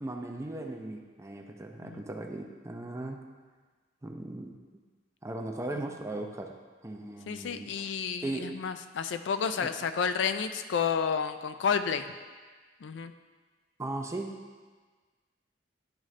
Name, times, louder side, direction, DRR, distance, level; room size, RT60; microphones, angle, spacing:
voice 1, 0.0-3.2 4.0-4.6 5.2-6.5 6.8-7.9 8.2-8.5 9.6-9.7 13.8-14.3, right 2 dB, 15° right, 3 dB, 0.5 m, -37 dB
voice 2, 7.3-12.0 12.8-13.1, left 6 dB, 70° left, 9 dB, 0.3 m, -30 dB
10.5 x 3.7 x 3.2 m, 1.4 s
head